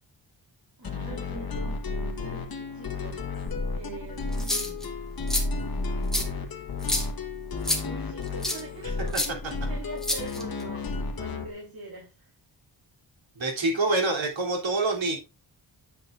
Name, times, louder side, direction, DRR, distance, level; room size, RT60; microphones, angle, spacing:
sound 1, 0.8-11.5, left 3 dB, 50° left, 1.5 m, -32 dB
voice 1, 0.8-3.3 3.7-5.0 6.1-6.6 7.8-9.2 9.5-12.3, right 3 dB, 50° right, 3.3 m, -43 dB
sound 2, 4.3-4.9 5.3-5.4 6.1-6.2 6.8-7.1 7.6-7.8 8.4-8.6 9.1-9.3 10.0-10.6, left 1 dB, ahead, 1.8 m, -27 dB
voice 2, 13.4-15.2, right 2 dB, 85° right, 3.3 m, -26 dB
9.2 x 7.9 x 2.5 m
wide cardioid pair, 145°, 45 cm